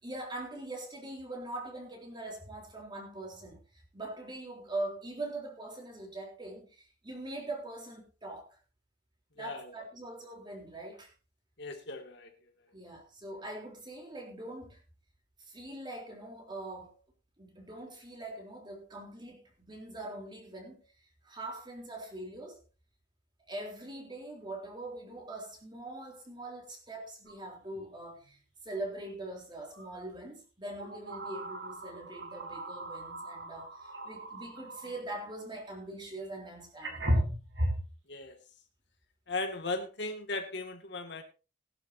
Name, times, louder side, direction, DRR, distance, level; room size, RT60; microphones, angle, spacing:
voice 1, 0.0-3.6 3.9-6.7 7.0-8.6 9.4-11.1 12.7-14.8 15.5-16.9 17.4-20.8 21.2-22.6 23.5-28.4 28.7-37.3, right 2 dB, 25° right, 3.7 m, -42 dB
voice 2, 9.4-9.8 11.6-12.3 38.1-38.4 39.3-41.2, left 2 dB, 65° left, 2.2 m, -37 dB
sound 1, 27.3-27.4 27.7-27.9 29.7-29.9 30.8-35.1 36.2-36.3 36.8-37.9, equal, 70° right, 4.7 m, -35 dB
19.0 x 11.5 x 2.8 m
head